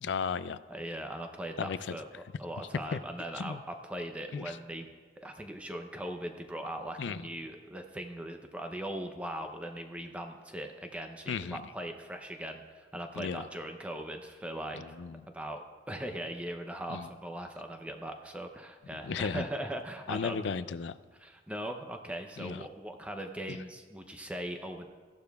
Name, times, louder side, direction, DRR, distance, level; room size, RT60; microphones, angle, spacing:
voice 1, 0.0-0.6 1.6-2.0 2.9-3.0 3.4-3.6 4.3-4.6 7.0-7.2 11.3-11.6 13.2-13.4 14.7-15.2 16.9-17.1 19.0-19.5 20.1-21.0 22.4-22.6 23.5-23.6, left 5 dB, 85° left, 15 dB, 0.4 m, -35 dB
voice 2, 0.7-4.9 5.2-14.8 15.3-20.4 21.2-24.9, right 1 dB, 10° right, 4 dB, 0.6 m, -40 dB
15.5 x 11.5 x 2.3 m, 1.5 s
head